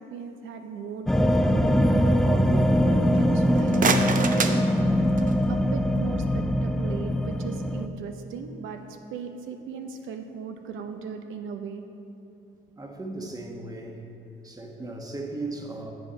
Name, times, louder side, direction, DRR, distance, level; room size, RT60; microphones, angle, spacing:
voice 1, 0.0-4.6 5.5-8.8 9.1-11.8, right 6 dB, 85° right, 6 dB, 0.7 m, -37 dB
sound 1, 1.1-7.9, equal, ahead, 0.4 m, -22 dB
sound 2, 3.4-5.5, right 5 dB, 45° right, 0.6 m, -28 dB
voice 2, 12.8-14.1 14.4-15.9, right 2 dB, 20° right, 2 dB, 1.3 m, -37 dB
10.0 x 7.2 x 5.1 m, 2.9 s
cardioid pair, 90°, 20 cm